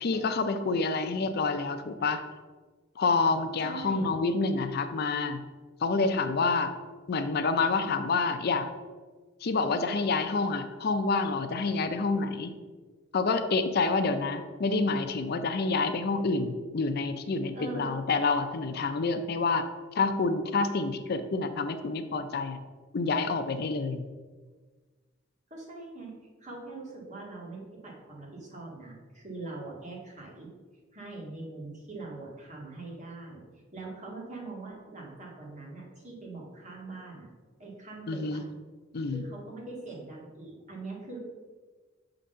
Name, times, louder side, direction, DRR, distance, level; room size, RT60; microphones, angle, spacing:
voice 1, 0.0-2.2 3.0-5.4 5.8-6.7 7.1-8.7 9.4-12.5 13.1-19.6 19.9-22.6 22.9-24.0 38.1-38.4 38.9-39.2, left 3 dB, 50° left, 8 dB, 0.4 m, -28 dB
voice 2, 3.6-4.2 17.5-18.0 25.5-26.1 26.4-30.5 30.9-33.4 33.7-37.3 37.6-38.4 39.1-41.2, right 3 dB, 40° right, -3 dB, 1.9 m, -42 dB
6.1 x 3.9 x 5.5 m, 1.4 s
head